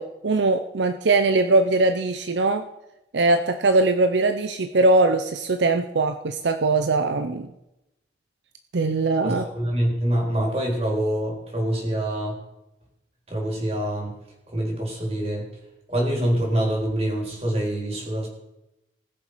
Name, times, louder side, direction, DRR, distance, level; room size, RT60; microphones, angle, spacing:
voice 1, 0.0-2.7 3.1-7.5 8.7-9.4, right 2 dB, 75° right, 8 dB, 0.6 m, -21 dB
voice 2, 9.2-12.4 13.3-14.1 14.5-15.5 15.9-18.3, right 1 dB, 35° right, -1 dB, 3.8 m, -25 dB
19.5 x 6.9 x 5.0 m, 0.92 s
head